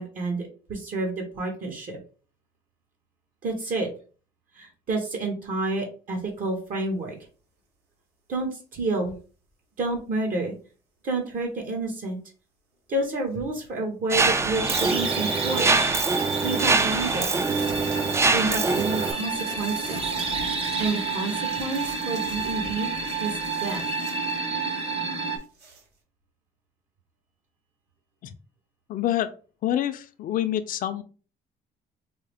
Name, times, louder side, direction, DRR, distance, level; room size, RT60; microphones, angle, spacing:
voice 1, 0.0-2.0 3.4-3.9 4.5-7.1 8.3-9.2 9.8-10.5 11.0-12.2 12.9-15.9 16.4-17.4 18.3-20.0 20.8-22.9 23.2-23.9, right 2 dB, 55° right, 1 dB, 1.1 m, -29 dB
sound 1, 13.3-13.4 14.6-14.8 15.7-24.8 25.1-25.9, right 2 dB, 85° right, 1.6 m, -45 dB
Mechanisms, 14.1-19.1, right 3 dB, 15° right, 0.3 m, -24 dB
sound 2, 14.5-25.4, right 4 dB, 35° right, 0.8 m, -30 dB
voice 2, 28.9-29.3 29.6-31.0, left 12 dB, 55° left, 11 dB, 0.5 m, -27 dB
4.6 x 2.0 x 3.4 m, 0.38 s
cardioid pair, 110°, 17 cm